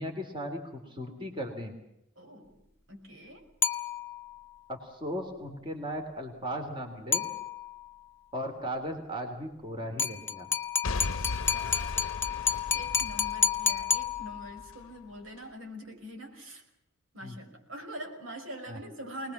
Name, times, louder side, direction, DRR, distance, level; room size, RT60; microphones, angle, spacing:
voice 1, 0.0-1.7 4.7-7.2 8.3-10.5 17.2-17.4 18.7-18.8, equal, 25° right, 4 dB, 3.2 m, -37 dB
voice 2, 2.2-2.5 2.9-3.4 10.9-12.1 12.7-16.6 17.1-19.3, equal, 75° right, 3 dB, 5.6 m, -44 dB
sound 1, 3.6-4.4 7.1-7.9 10.0-14.7, left 6 dB, 10° left, 1.0 m, -30 dB
Boom / Shatter / Crushing, 10.8-14.8 15.4-15.5, left 3 dB, 90° left, 0.8 m, -37 dB
25.0 x 20.5 x 7.3 m, 0.82 s
head